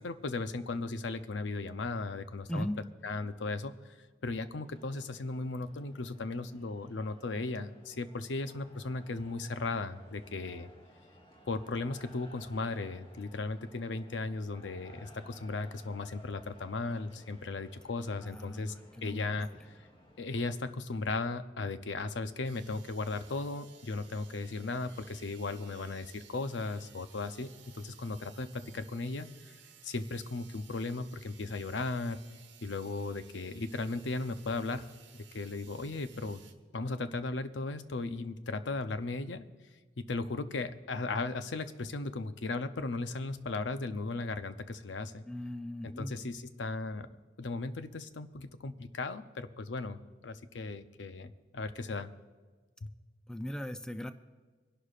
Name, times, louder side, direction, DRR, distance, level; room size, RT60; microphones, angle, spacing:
voice 1, 0.0-2.7 3.0-3.7 4.2-10.7 11.5-18.7 19.0-19.5 20.2-29.3 29.8-32.2 32.6-34.9 35.1-36.4 36.7-39.4 40.0-45.2 45.8-47.1 47.4-52.1, left 3 dB, 80° left, 10 dB, 0.7 m, -36 dB
sound 1, 4.6-20.7, equal, 30° left, 1.4 m, -58 dB
voice 2, 18.2-19.5 45.3-46.1 53.3-54.1, equal, 5° left, 9 dB, 0.4 m, -38 dB
sound 2, 22.4-36.5, right 8 dB, 80° right, 1.2 m, -58 dB
25.0 x 11.5 x 2.5 m, 1.4 s
head